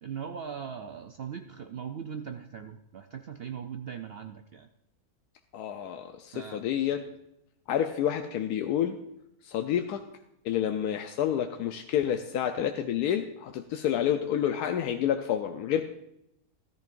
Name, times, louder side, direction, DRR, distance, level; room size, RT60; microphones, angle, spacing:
voice 1, 0.0-4.7 6.3-6.6, right 7 dB, 60° right, 6 dB, 0.6 m, -39 dB
voice 2, 5.5-7.0 7.7-9.0 9.4-10.0 10.4-15.9, left 10 dB, 90° left, 6 dB, 1.2 m, -29 dB
14.0 x 14.0 x 2.5 m, 0.82 s
omnidirectional pair, 1.6 m